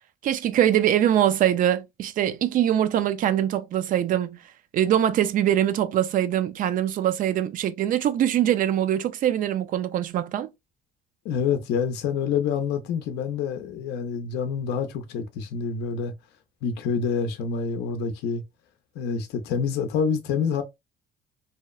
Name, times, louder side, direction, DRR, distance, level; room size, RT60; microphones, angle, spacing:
voice 1, 0.2-4.4 4.7-10.5, right 11 dB, 55° right, 0.4 m, -23 dB
voice 2, 11.2-16.1 16.6-18.4 19.0-20.6, left 6 dB, 80° left, 0.5 m, -27 dB
2.8 x 2.0 x 2.3 m
cardioid pair, 110°, 17 cm